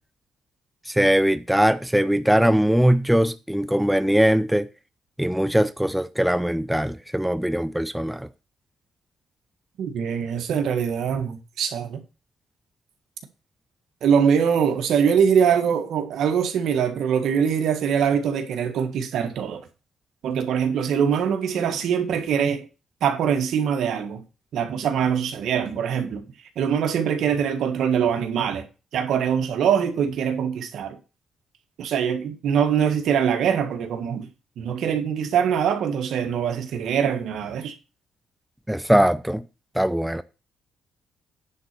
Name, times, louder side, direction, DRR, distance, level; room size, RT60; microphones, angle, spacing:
voice 1, 0.9-4.7 5.2-8.3 38.7-39.4 39.8-40.2, equal, 5° right, 0.5 m, -21 dB
voice 2, 9.8-12.0 14.0-19.6 20.2-22.6 23.0-24.2 24.5-26.2 26.5-28.7 28.9-31.0 31.8-34.3 34.6-37.7, right 7 dB, 75° right, 1.7 m, -23 dB
10.0 x 4.2 x 6.7 m
cardioid pair, 90°, 0 cm